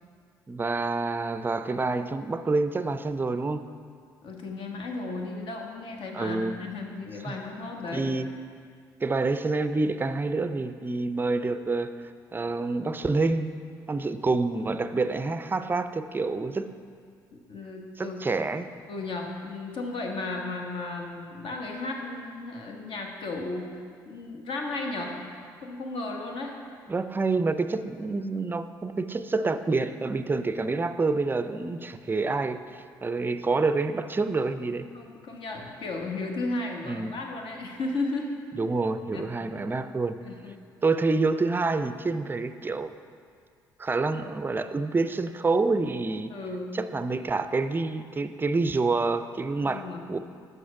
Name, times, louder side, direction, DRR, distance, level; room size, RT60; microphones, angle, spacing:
voice 1, 0.5-3.6 6.1-6.5 7.3-7.4 7.9-8.3 9.0-13.5 13.9-16.7 18.0-18.7 26.9-34.9 36.8-37.1 38.5-40.2 40.8-42.9 43.8-46.3 46.7-50.2, right 3 dB, 20° right, 11 dB, 0.4 m, -27 dB
voice 2, 4.2-8.1 17.5-18.2 18.9-25.2 25.6-26.6 34.9-38.3 39.1-39.3 40.2-40.6 46.3-46.8 49.6-50.2, left 2 dB, 60° left, 1 dB, 1.1 m, -34 dB
6.2 x 5.3 x 5.9 m, 2.1 s
hypercardioid pair, 55°, 10 cm